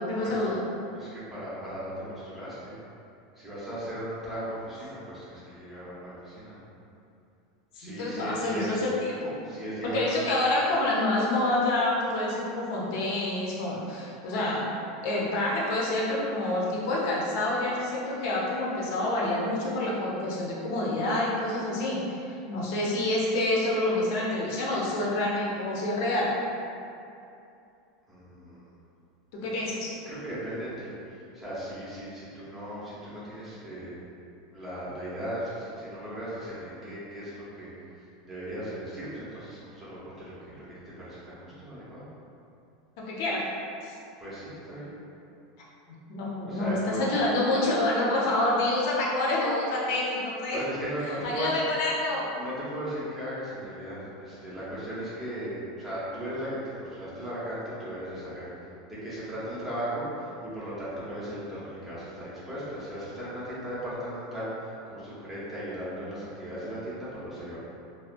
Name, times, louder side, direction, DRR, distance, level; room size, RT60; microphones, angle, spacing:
voice 1, 0.1-0.6 7.7-9.3 9.8-14.7 15.0-26.3 29.4-29.9 43.0-43.4 43.8-44.0 46.1-50.6 51.1-52.3, left 2 dB, 55° left, -5 dB, 0.6 m, -27 dB
voice 2, 0.9-2.8 3.3-6.6 7.7-8.8 9.4-10.2 28.1-28.7 29.4-29.5 30.1-34.0 34.5-42.1 44.2-44.9 46.4-47.1 50.5-51.6 52.4-67.6, right 1 dB, 10° right, -10 dB, 0.7 m, -37 dB
2.3 x 2.2 x 2.5 m, 2.6 s
supercardioid pair, 160°, 2 cm